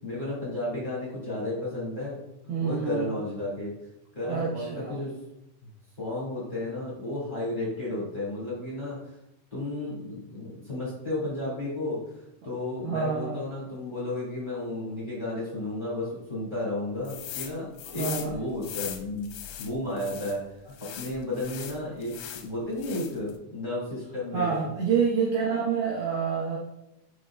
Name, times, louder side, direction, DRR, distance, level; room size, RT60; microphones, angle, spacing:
voice 1, 0.0-2.2 2.6-3.7 4.1-5.1 6.0-9.2 9.5-12.0 12.4-19.3 19.6-20.6 20.9-24.6, left 1 dB, 40° left, -8 dB, 0.6 m, -33 dB
voice 2, 2.5-3.1 4.2-5.0 12.8-13.4 17.9-18.4 24.3-26.6, right 6 dB, 80° right, -5 dB, 2.2 m, -27 dB
sound 1, 17.1-17.5 17.8-20.4 20.7-22.5 22.8-23.3, left 11 dB, 90° left, 3.3 m, -39 dB
8.5 x 5.4 x 2.5 m, 0.86 s
omnidirectional pair, 5.7 m